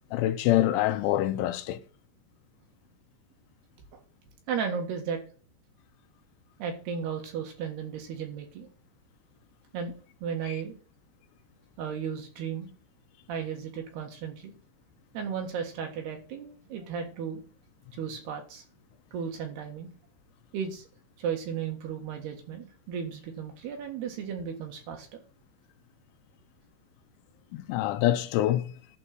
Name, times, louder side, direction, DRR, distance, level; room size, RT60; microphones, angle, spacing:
voice 1, 0.1-1.8 27.5-28.7, left 13 dB, 80° left, 3.1 m, -25 dB
voice 2, 4.5-5.2 6.6-8.7 9.7-10.8 11.8-12.7 13.3-14.5 15.1-17.4 17.9-18.6 19.1-19.9 20.5-20.9 21.2-25.2, right 7 dB, 65° right, 3.4 m, -35 dB
11.5 x 4.2 x 7.5 m
omnidirectional pair, 5.5 m